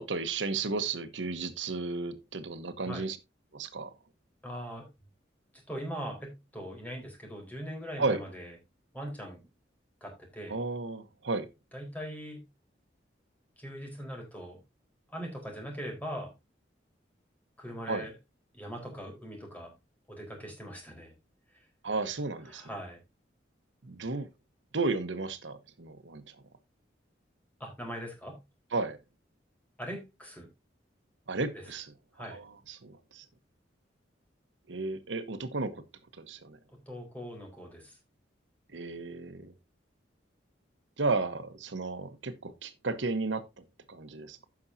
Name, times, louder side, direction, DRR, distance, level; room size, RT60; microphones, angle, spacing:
voice 1, 0.0-3.2 3.5-3.9 8.0-8.2 10.5-11.5 17.9-18.1 21.8-22.6 23.8-24.3 24.7-26.3 28.7-29.0 31.3-31.9 32.2-33.2 34.7-35.8 36.2-36.6 38.7-39.5 41.0-44.5, right 3 dB, 90° right, 1.1 m, -33 dB
voice 2, 4.4-4.9 5.7-8.5 8.9-9.5 10.0-10.5 11.7-12.4 13.6-14.6 15.1-16.3 17.6-18.1 18.5-19.7 20.1-21.2 21.5-21.6 22.5-23.0 27.6-28.4 29.8-30.5 31.5-31.6 32.1-32.4 36.7-38.0, equal, 10° left, 4.0 m, -41 dB
15.5 x 6.0 x 2.7 m
head